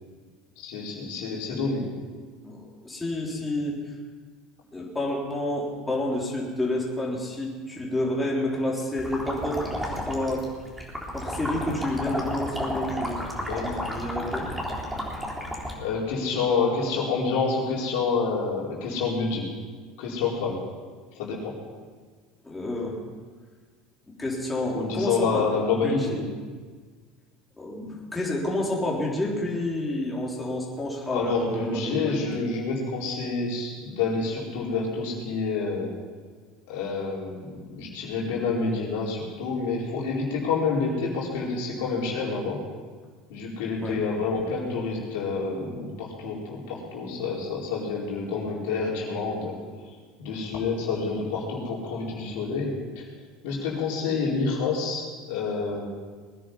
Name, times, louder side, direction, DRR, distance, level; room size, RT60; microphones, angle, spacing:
voice 1, 0.6-1.8 13.5-13.7 15.8-19.5 20.0-20.6 21.1-21.5 24.7-26.2 31.1-35.9 36.7-42.6 43.3-49.6 50.2-52.7 53.4-55.8, left 4 dB, 70° left, -4 dB, 4.4 m, -28 dB
voice 2, 2.4-3.8 4.7-10.5 11.1-13.2 13.6-14.5 22.4-23.0 24.2-25.5 25.7-26.3 27.6-32.2 43.8-44.0, left 1 dB, 15° left, -3 dB, 4.0 m, -29 dB
sound 1, 9.0-15.7, equal, 5° right, 3.8 m, -32 dB
21.0 x 10.0 x 5.7 m, 1.5 s
hypercardioid pair, 80°, 0 cm